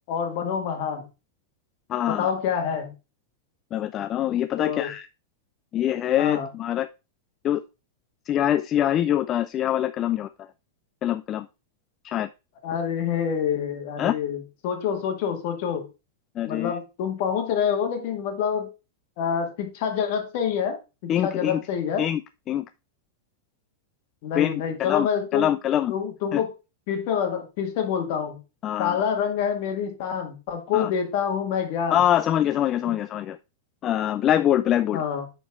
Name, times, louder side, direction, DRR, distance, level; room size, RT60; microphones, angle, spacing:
voice 1, 0.1-1.0 2.1-2.9 4.6-4.9 6.2-6.5 12.6-15.8 16.5-18.7 19.2-20.8 21.0-22.0 24.2-25.6 25.9-26.5 26.9-28.4 28.8-32.0 32.8-33.0 34.9-35.3, left 7 dB, 55° left, 1.9 m, -27 dB
voice 2, 1.9-2.3 3.7-5.1 5.7-6.9 7.4-7.6 8.3-10.5 11.0-11.5 12.0-12.3 14.0-14.1 16.4-16.7 21.1-21.6 22.0-22.2 22.5-22.7 24.4-24.5 24.8-25.1 25.3-25.9 26.3-26.4 28.6-29.0 30.7-30.9 31.9-33.4 33.8-35.0, left 11 dB, 30° left, 0.3 m, -24 dB
9.4 x 4.5 x 3.6 m
supercardioid pair, 140°, 0 cm